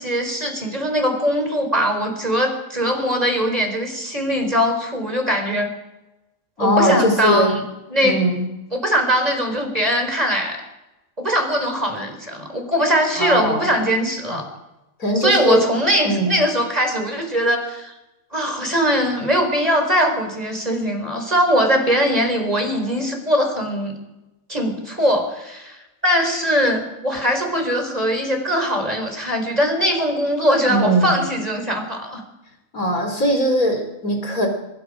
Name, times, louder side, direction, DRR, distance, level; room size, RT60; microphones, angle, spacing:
voice 1, 0.0-5.7 6.6-7.6 7.9-8.2 8.7-10.6 11.2-14.5 15.1-17.9 18.3-24.0 24.5-32.2, equal, 25° right, 4 dB, 4.7 m, -21 dB
voice 2, 6.6-7.6 8.0-8.5 13.2-13.7 15.0-15.6 16.0-16.4 30.7-31.2 32.7-34.5, equal, 80° left, 4 dB, 4.7 m, -20 dB
24.5 x 22.5 x 5.1 m, 0.97 s
omnidirectional pair, 1.5 m